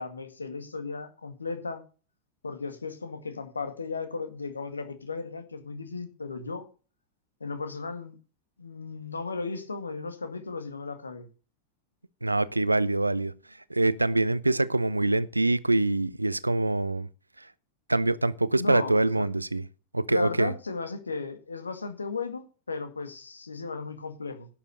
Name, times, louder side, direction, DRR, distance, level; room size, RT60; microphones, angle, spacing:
voice 1, 0.0-1.8 2.4-6.6 7.4-8.2 8.6-11.3 18.6-19.3 20.1-24.5, left 4 dB, 75° left, 1.9 m, -35 dB
voice 2, 12.2-13.3 13.7-17.1 17.9-19.7 19.9-20.5, right 2 dB, 85° right, 0.6 m, -25 dB
11.0 x 7.3 x 6.5 m
figure-of-eight pair, 90°, 0 cm